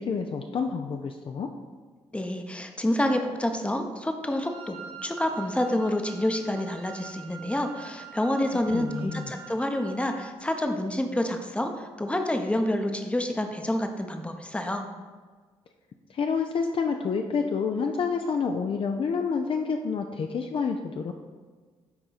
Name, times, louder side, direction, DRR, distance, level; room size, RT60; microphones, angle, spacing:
voice 1, 0.0-1.5 8.7-9.3 16.1-21.1, left 5 dB, 40° left, 4 dB, 0.5 m, -28 dB
voice 2, 2.1-14.8, left 1 dB, 10° left, 5 dB, 0.8 m, -28 dB
Wind instrument woodwind instrument, 4.3-10.3, right 7 dB, 65° right, 1.1 m, -45 dB
7.1 x 4.8 x 4.1 m, 1.5 s
figure-of-eight pair, 40°, 14 cm